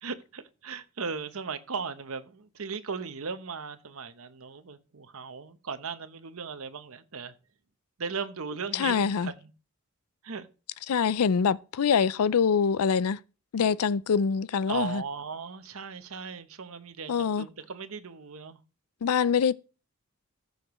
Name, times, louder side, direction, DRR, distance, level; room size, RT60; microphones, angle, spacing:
voice 1, 0.0-7.3 8.0-9.5 10.2-10.5 14.7-18.6, right 5 dB, 75° right, 0.9 m, -37 dB
voice 2, 8.7-9.3 10.9-13.2 13.5-15.0 17.1-17.5 19.0-19.5, left 6 dB, 90° left, 0.4 m, -24 dB
14.5 x 6.5 x 3.1 m
head